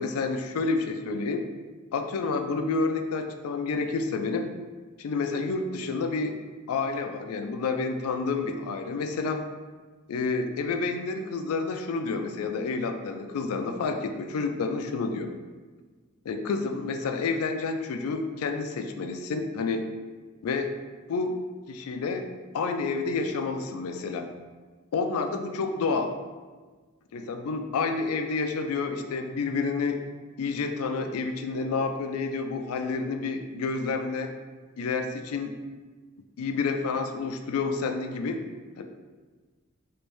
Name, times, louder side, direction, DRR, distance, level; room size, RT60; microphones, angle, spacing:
voice 1, 0.0-1.4 1.9-4.4 5.0-6.4 6.7-9.4 10.1-15.3 16.3-19.9 20.4-20.7 21.1-21.4 21.7-24.3 24.9-26.1 27.1-30.0 30.4-34.3 34.8-35.5 36.4-38.4 38.8-38.9, left 4 dB, 80° left, 6 dB, 0.4 m, -29 dB
3.2 x 2.6 x 3.1 m, 1.4 s
head